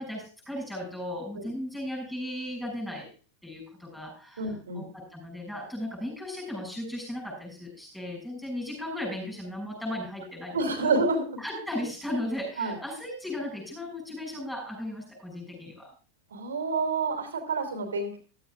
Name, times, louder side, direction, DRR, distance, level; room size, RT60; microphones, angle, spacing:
voice 1, 0.0-3.1 3.4-10.9 11.4-15.9, left 1 dB, ahead, -3 dB, 6.9 m, -36 dB
voice 2, 4.4-4.9 10.5-11.4 12.6-12.8 16.3-18.2, right 3 dB, 65° right, 7 dB, 2.9 m, -28 dB
15.0 x 14.0 x 2.4 m, 0.36 s
figure-of-eight pair, 90°, 0 cm